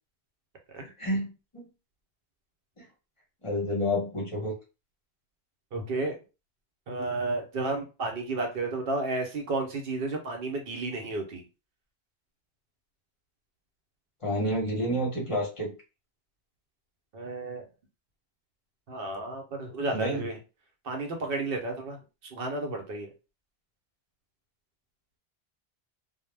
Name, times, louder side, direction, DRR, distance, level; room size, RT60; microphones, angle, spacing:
voice 1, 1.0-1.7 2.8-2.9 3.4-4.5 14.2-15.7 19.9-20.2, equal, 35° left, -3 dB, 0.8 m, -29 dB
voice 2, 5.7-6.2 6.9-11.4 17.1-17.7 18.9-20.4 20.8-22.0 22.3-23.1, right 2 dB, 65° right, 3 dB, 0.8 m, -32 dB
2.1 x 2.0 x 3.2 m, 0.30 s
omnidirectional pair, 1.1 m